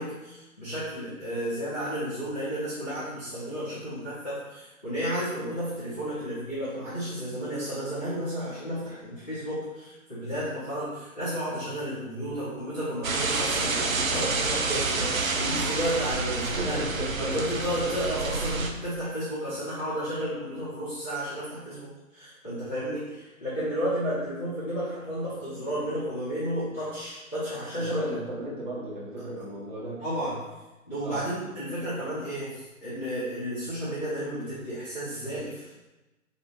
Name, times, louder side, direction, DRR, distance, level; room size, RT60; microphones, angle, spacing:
voice 1, 0.0-16.8 17.2-28.0 30.0-30.4 30.9-35.7, equal, 10° left, -17 dB, 0.5 m, -32 dB
sound 1, 13.0-18.7, right 3 dB, 70° right, 0.7 m, -28 dB
voice 2, 16.4-17.4 27.8-30.0 31.0-31.3, right 1 dB, 35° right, -6 dB, 1.3 m, -35 dB
4.2 x 2.6 x 3.7 m, 1.1 s
figure-of-eight pair, 135°, 41 cm